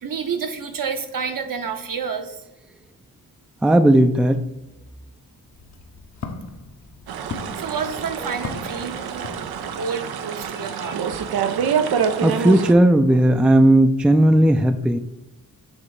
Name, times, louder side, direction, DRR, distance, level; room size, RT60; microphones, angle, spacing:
voice 1, 0.0-2.4 7.3-9.4 9.8-11.0, right 6 dB, 60° right, 5 dB, 1.0 m, -29 dB
voice 2, 3.6-4.4 12.2-15.0, right 1 dB, 5° right, 8 dB, 0.4 m, -15 dB
Walk footsteps, 5.4-9.9, left 4 dB, 45° left, 0.8 m, -38 dB
sound 1, 7.1-12.7, right 7 dB, 90° right, 0.6 m, -26 dB
7.4 x 3.2 x 4.8 m, 0.91 s
cardioid pair, 75°, 37 cm